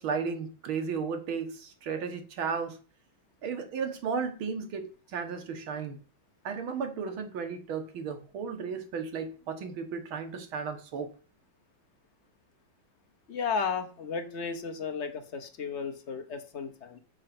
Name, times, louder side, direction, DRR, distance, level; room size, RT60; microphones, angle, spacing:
voice 1, 0.0-2.8 3.4-6.0 6.4-11.1, right 5 dB, 90° right, 6 dB, 2.2 m, -34 dB
voice 2, 13.3-17.0, left 5 dB, 50° left, 7 dB, 0.9 m, -34 dB
6.5 x 6.3 x 5.9 m, 0.38 s
omnidirectional pair, 2.2 m